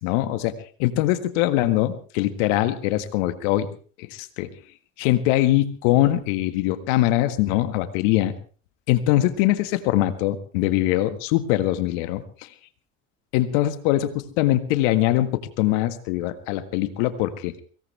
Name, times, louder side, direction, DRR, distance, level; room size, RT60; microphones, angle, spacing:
voice 1, 0.0-3.7 4.1-4.5 5.0-8.3 8.9-12.5 13.3-17.5, left 14 dB, 75° left, 11 dB, 1.7 m, -22 dB
23.5 x 18.0 x 3.4 m, 0.40 s
hypercardioid pair, 65°, 37 cm